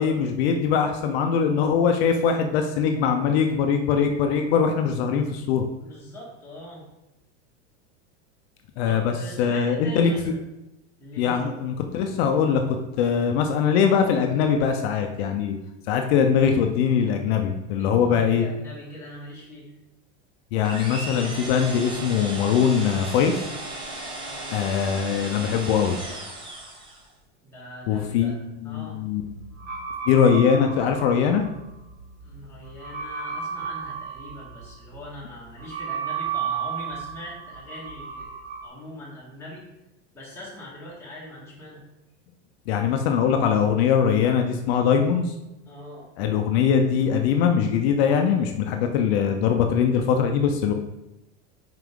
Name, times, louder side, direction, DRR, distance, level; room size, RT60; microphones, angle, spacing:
voice 1, 0.0-5.6 8.8-10.1 11.2-15.6 15.9-18.5 20.5-23.4 24.5-26.0 27.9-28.3 28.6-29.2 30.1-31.4 42.7-45.3 46.2-50.7, left 7 dB, 65° left, 4 dB, 0.7 m, -22 dB
voice 2, 5.7-6.9 8.8-10.4 11.0-11.5 17.8-19.7 24.3-24.6 27.4-28.4 28.6-29.0 30.2-30.4 32.2-39.6 40.1-41.8 45.7-46.1, left 1 dB, 5° left, -8 dB, 2.0 m, -42 dB
sound 1, 20.6-27.1, right 2 dB, 15° right, 1.1 m, -36 dB
sound 2, 29.2-38.7, right 7 dB, 35° right, 1.0 m, -34 dB
5.8 x 4.9 x 3.7 m, 0.94 s
supercardioid pair, 140°, 34 cm